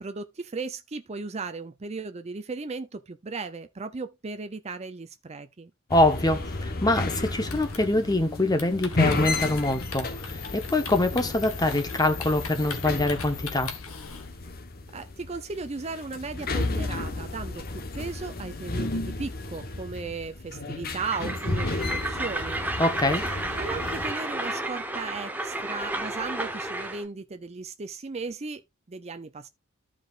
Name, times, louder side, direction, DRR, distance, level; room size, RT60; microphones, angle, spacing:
voice 1, 0.0-5.7 14.9-22.6 23.6-28.6 28.9-29.5, right 4 dB, 30° right, 0.5 m, -36 dB
sound 1, 5.9-24.1, left 2 dB, 45° left, 1.1 m, -33 dB
voice 2, 5.9-13.7 22.8-23.2, left 1 dB, 20° left, 1.2 m, -24 dB
Typing, 7.4-14.3, left 5 dB, 90° left, 1.6 m, -42 dB
Train, 21.0-27.0, right 1 dB, 10° right, 1.0 m, -32 dB
14.5 x 5.0 x 2.4 m
head